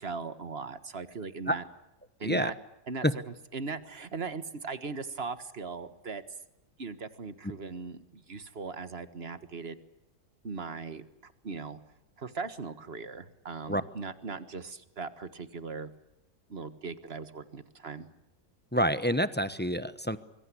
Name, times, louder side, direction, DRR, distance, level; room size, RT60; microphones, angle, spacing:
voice 1, 0.0-1.6 2.2-2.5 2.9-3.1 3.5-6.2 6.8-9.8 10.4-11.8 12.2-15.9 16.5-18.1, right 4 dB, 35° right, 12 dB, 1.6 m, -39 dB
voice 2, 18.7-20.2, equal, 10° left, 12 dB, 0.6 m, -27 dB
25.5 x 22.5 x 8.5 m, 0.89 s
omnidirectional pair, 1.9 m